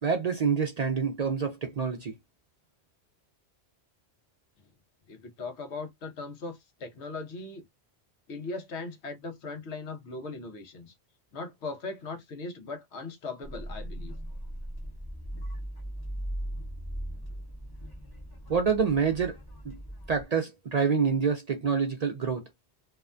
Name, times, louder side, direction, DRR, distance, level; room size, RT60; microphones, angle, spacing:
voice 1, 0.0-2.1 18.5-19.4 19.6-19.8 20.1-22.4, right 6 dB, 55° right, 0.4 m, -27 dB
voice 2, 5.1-7.6 8.3-10.9 11.3-14.1 17.1-17.2, left 3 dB, 85° left, 1.1 m, -39 dB
sound 1, 13.4-20.2, equal, 25° left, 0.6 m, -39 dB
2.7 x 2.2 x 2.4 m
omnidirectional pair, 1.1 m